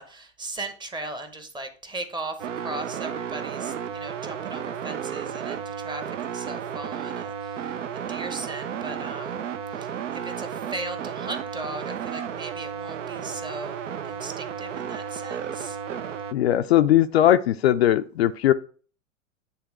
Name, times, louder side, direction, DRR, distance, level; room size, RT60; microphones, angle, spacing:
voice 1, 0.0-9.4 9.7-13.8 14.0-15.8, right 2 dB, 10° right, 8 dB, 0.8 m, -38 dB
sound 1, 2.4-16.3, right 8 dB, 70° right, 0.6 m, -33 dB
voice 2, 16.3-18.5, left 12 dB, 55° left, 9 dB, 0.5 m, -19 dB
9.4 x 3.4 x 4.6 m, 0.42 s
figure-of-eight pair, 100°, 39 cm